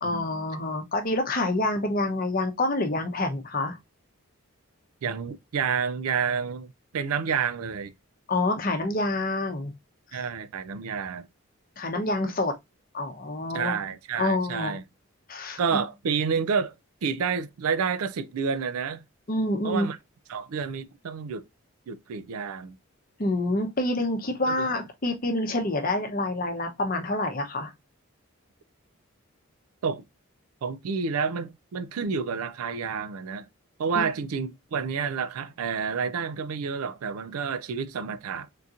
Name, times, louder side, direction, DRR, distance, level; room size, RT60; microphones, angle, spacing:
voice 1, 0.0-3.8 8.3-9.7 10.1-10.2 11.8-12.5 12.9-13.8 14.2-14.8 15.3-15.6 19.3-19.9 23.2-27.7 33.9-34.1, left 2 dB, 40° left, 0.7 m, -27 dB
voice 2, 5.0-7.9 10.1-11.3 13.5-14.8 15.6-16.8 17.0-19.0 19.6-20.0 20.3-21.4 21.9-22.7 24.5-24.7 29.8-30.0 30.6-33.5 33.8-38.5, right 6 dB, 90° right, 0.4 m, -29 dB
3.7 x 2.8 x 2.4 m
head